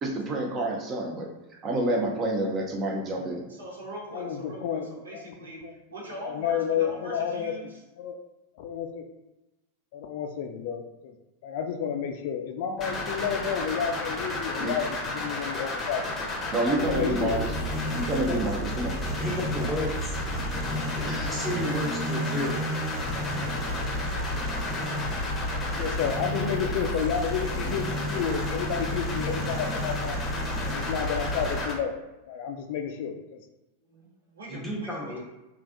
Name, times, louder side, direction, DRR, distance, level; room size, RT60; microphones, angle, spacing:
voice 1, 0.0-1.3 1.6-3.5 14.6-14.7 16.5-17.5 17.9-19.0, right 1 dB, 30° right, 0 dB, 0.6 m, -28 dB
voice 2, 3.5-5.6 5.9-7.8 33.8-35.2, right 1 dB, 75° right, -3 dB, 0.9 m, -42 dB
voice 3, 4.1-5.3 5.6-5.7 6.2-8.2 8.6-9.0 9.9-11.2 11.4-16.2 16.6-17.4 25.7-30.2 30.6-31.9 32.3-33.4, left 7 dB, 55° left, 6 dB, 0.3 m, -31 dB
sound 1, 12.8-31.7, left 1 dB, 25° left, 0.7 m, -30 dB
voice 4, 19.0-22.9 34.5-35.2, equal, 5° right, -3 dB, 0.9 m, -33 dB
3.2 x 2.5 x 2.5 m, 1.0 s
figure-of-eight pair, 90°, 0 cm